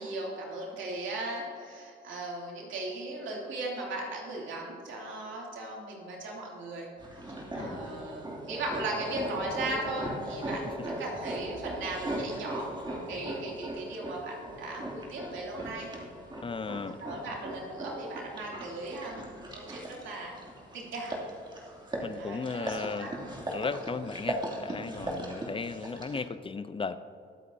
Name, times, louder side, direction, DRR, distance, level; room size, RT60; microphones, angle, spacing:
voice 1, 0.0-6.9 7.5-15.9 17.0-20.4 20.7-21.2 22.2-23.1 25.2-25.4, right 2 dB, 75° right, -2 dB, 2.8 m, -38 dB
sound 1, 7.0-26.2, right 1 dB, 25° right, 2.6 m, -38 dB
voice 2, 7.5-7.9 16.4-17.0 22.0-23.1 23.5-27.0, left 4 dB, 25° left, 13 dB, 0.6 m, -36 dB
22.5 x 8.4 x 2.8 m, 2.4 s
cardioid pair, 90°, 20 cm